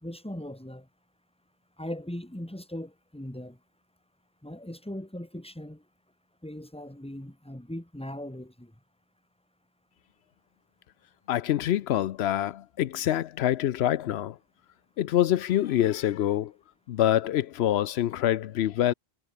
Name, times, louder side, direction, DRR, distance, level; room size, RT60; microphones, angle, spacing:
voice 1, 0.0-0.9 1.8-3.6 4.4-5.8 6.4-8.7, left 1 dB, 5° left, 2.2 m, -39 dB
voice 2, 11.3-14.4 15.0-16.5 16.9-18.9, left 12 dB, 85° left, 0.9 m, -25 dB
omnidirectional pair, 1.0 m